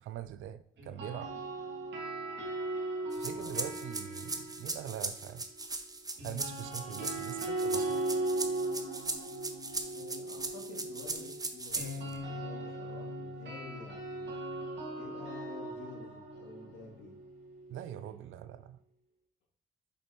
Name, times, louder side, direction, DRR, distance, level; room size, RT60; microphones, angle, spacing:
voice 1, 0.1-1.3 3.1-5.4 6.2-8.1 17.7-18.8, right 11 dB, 80° right, 13 dB, 0.5 m, -43 dB
sound 1, 0.8-5.0 6.2-18.1, right 2 dB, 65° right, 2.1 m, -38 dB
sound 2, 3.1-12.2, right 3 dB, 20° right, 0.7 m, -39 dB
voice 2, 3.2-3.8 9.9-14.3 14.9-17.1, left 3 dB, 80° left, -3 dB, 2.6 m, -50 dB
7.0 x 5.2 x 3.1 m, 0.63 s
cardioid pair, 90°, 20 cm